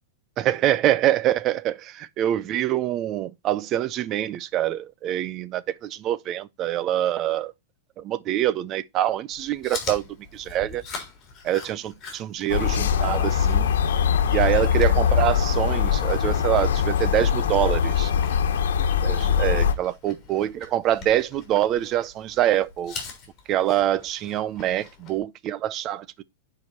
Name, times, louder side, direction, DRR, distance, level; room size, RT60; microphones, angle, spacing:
voice 1, 0.4-7.5 8.0-10.0 10.3-10.8 11.4-13.7 14.3-18.1 19.0-23.0 23.5-26.2, right 12 dB, 25° right, 0.5 m, -25 dB
Chewing mastication, 9.3-25.2, left 5 dB, 20° left, 3.6 m, -43 dB
sound 1, 12.5-19.7, left 7 dB, 80° left, 1.3 m, -22 dB
9.6 x 4.8 x 4.2 m
supercardioid pair, 160°, 0 cm